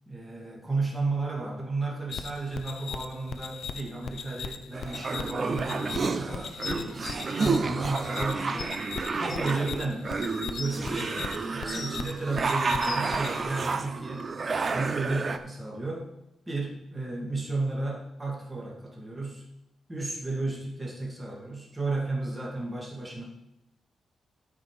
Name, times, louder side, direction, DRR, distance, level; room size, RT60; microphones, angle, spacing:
voice 1, 0.1-8.8 9.1-10.1 10.6-14.3 14.7-16.1 16.5-19.4 19.9-23.2, right 3 dB, 15° right, -3 dB, 2.1 m, -33 dB
sound 1, 2.1-13.4, left 6 dB, 60° left, 0.6 m, -39 dB
sound 2, 4.7-15.4, right 4 dB, 35° right, 0.6 m, -30 dB
sound 3, 6.6-7.1 8.2-8.3 8.6-8.7 9.3-9.4 10.2-10.8 11.4-12.1 12.5-13.2 14.2-14.3, left 4 dB, 45° left, 1.2 m, -39 dB
12.5 x 4.7 x 5.1 m, 0.88 s
wide cardioid pair, 150°, 0 cm